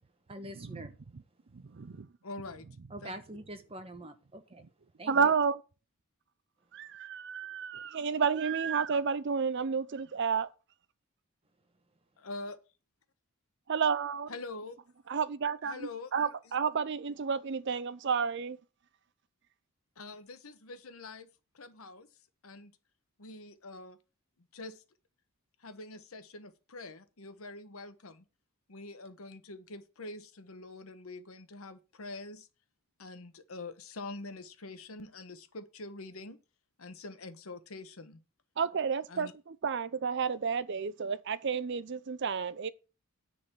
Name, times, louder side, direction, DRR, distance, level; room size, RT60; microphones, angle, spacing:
voice 1, 0.3-0.9 2.9-4.6 5.0-5.3, right 1 dB, 25° right, 1.2 m, -45 dB
voice 2, 1.5-2.1 5.1-5.6 6.7-10.5 13.7-14.3 15.1-18.6 38.6-42.7, right 6 dB, 55° right, 0.5 m, -31 dB
voice 3, 2.2-2.7 3.0-3.1 5.1-5.3 12.2-12.6 14.3-14.8 15.6-16.5 20.0-22.7 23.2-24.0 24.4-24.8 25.6-28.2 28.7-32.5 33.0-36.4 36.8-38.2 39.1-39.3, left 2 dB, 80° left, 1.1 m, -45 dB
9.8 x 4.0 x 7.3 m
head